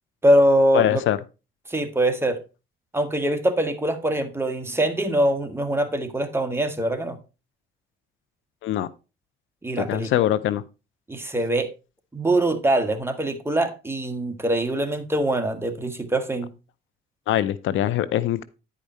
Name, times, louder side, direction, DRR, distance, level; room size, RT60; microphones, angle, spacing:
voice 1, 0.2-1.0 1.7-2.4 2.9-7.2 9.6-10.1 11.1-11.7 12.1-16.5, right 1 dB, 10° right, 1.5 m, -23 dB
voice 2, 0.7-1.2 8.6-8.9 9.8-10.6 17.3-18.4, left 12 dB, 80° left, 0.6 m, -23 dB
10.0 x 5.1 x 4.2 m
cardioid pair, 90°, 20 cm